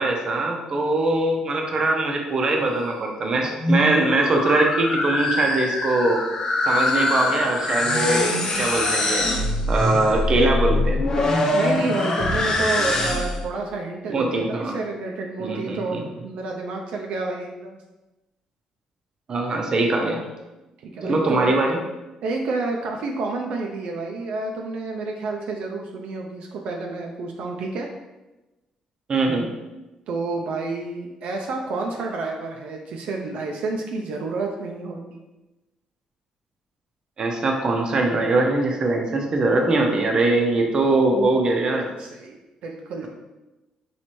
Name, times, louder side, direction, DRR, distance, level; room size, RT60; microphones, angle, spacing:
voice 1, 0.0-6.2 6.6-9.3 9.7-11.0 14.1-14.7 15.4-16.0 19.3-20.2 21.0-21.8 29.1-29.5 37.2-41.9, right 2 dB, 40° right, 1 dB, 0.6 m, -22 dB
sound 1, 3.5-13.5, left 2 dB, 35° left, 0.6 m, -23 dB
voice 2, 9.9-10.3 11.2-17.8 20.8-21.5 22.2-27.9 30.1-35.2 41.8-43.1, right 3 dB, 75° right, 1 dB, 0.4 m, -30 dB
4.3 x 3.2 x 3.0 m, 1.1 s
cardioid pair, 130°, 2 cm